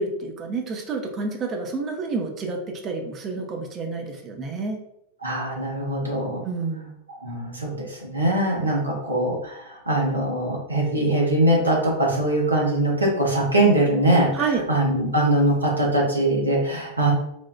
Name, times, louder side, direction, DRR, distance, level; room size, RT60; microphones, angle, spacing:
voice 1, 0.0-2.6 2.8-4.8 6.4-7.0 14.3-14.6, right 4 dB, 30° right, 3 dB, 0.6 m, -29 dB
voice 2, 5.2-6.4 7.1-17.1, right 1 dB, 80° right, -3 dB, 0.9 m, -22 dB
4.2 x 2.3 x 2.2 m, 0.79 s
figure-of-eight pair, 90°, 0 cm